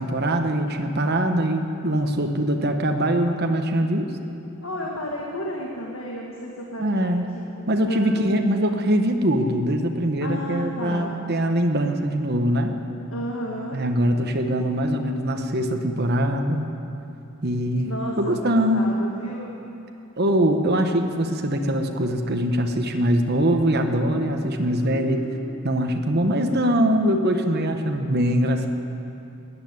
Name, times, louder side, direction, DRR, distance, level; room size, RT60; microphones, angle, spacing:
voice 1, 0.0-4.1 6.8-7.3 7.7-12.8 13.7-16.7 17.4-18.8 20.2-25.2 25.6-28.7, equal, 45° right, 5 dB, 1.1 m, -22 dB
voice 2, 4.6-7.1 7.5-8.3 10.2-11.1 13.1-13.8 17.8-19.5 24.7-25.6, equal, 65° left, -2 dB, 1.6 m, -32 dB
14.5 x 9.9 x 9.5 m, 2.8 s
head